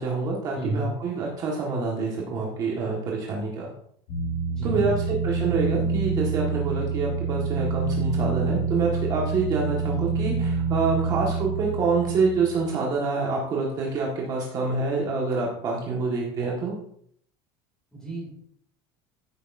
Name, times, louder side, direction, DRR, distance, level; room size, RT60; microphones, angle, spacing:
voice 1, 0.0-3.7 4.6-4.9 5.2-16.7, right 4 dB, 35° right, -2 dB, 1.7 m, -26 dB
voice 2, 0.5-0.9 4.5-5.1 17.9-18.3, right 1 dB, 5° left, -2 dB, 2.9 m, -31 dB
sound 1, 4.1-12.7, right 4 dB, 70° left, 2.9 m, -27 dB
14.0 x 6.4 x 2.7 m, 0.65 s
cardioid pair, 170°, 12 cm